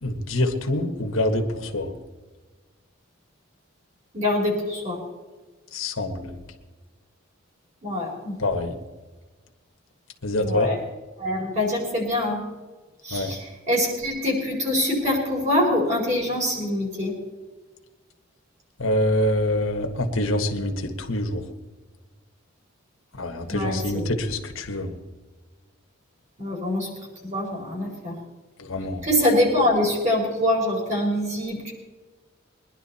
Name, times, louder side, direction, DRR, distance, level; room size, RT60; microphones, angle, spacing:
voice 1, 0.0-1.9 5.7-6.3 8.4-8.7 10.2-10.7 13.1-13.3 18.8-21.4 23.2-24.9 28.6-29.1, left 1 dB, 90° left, 4 dB, 1.5 m, -25 dB
voice 2, 4.1-5.0 7.8-8.3 10.4-10.8 11.2-12.4 13.0-17.1 23.5-24.1 26.4-26.9 27.2-28.1 29.0-31.7, left 1 dB, 35° right, -2 dB, 4.7 m, -24 dB
22.0 x 11.0 x 4.2 m, 1.3 s
head